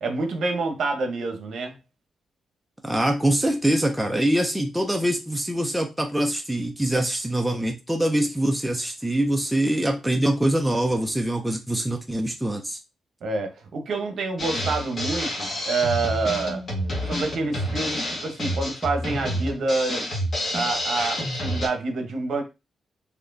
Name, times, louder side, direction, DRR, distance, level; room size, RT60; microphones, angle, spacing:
voice 1, 0.0-1.7 13.2-16.6 17.1-20.1 20.5-22.4, right 3 dB, 60° right, 0.9 m, -27 dB
voice 2, 2.8-12.8, right 1 dB, 5° right, 0.4 m, -24 dB
Drum kit, 14.4-21.7, equal, 35° left, 1.4 m, -28 dB
4.1 x 2.9 x 2.6 m
wide cardioid pair, 150°, 0 cm